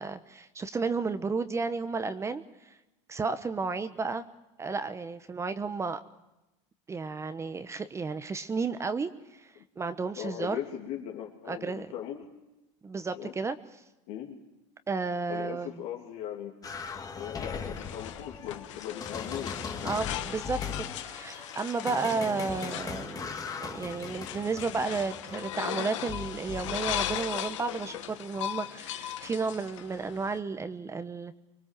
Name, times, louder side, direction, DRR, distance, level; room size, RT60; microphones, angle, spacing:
voice 1, 0.0-2.7 3.1-4.2 4.6-6.0 6.9-10.6 11.5-11.9 12.8-13.6 14.9-15.7 19.8-23.3 23.6-31.4, right 4 dB, 20° right, 10 dB, 1.0 m, -33 dB
voice 2, 10.2-12.3 13.1-13.3 14.1-14.4 15.3-16.5 17.1-20.0, left 10 dB, 65° left, -1 dB, 2.9 m, -39 dB
sound 1, 16.6-27.2, left 6 dB, 25° left, 1.9 m, -39 dB
sound 2, 17.5-30.4, left 12 dB, 90° left, 1.4 m, -38 dB
24.5 x 21.5 x 7.6 m, 0.99 s
supercardioid pair, 120°, 15 cm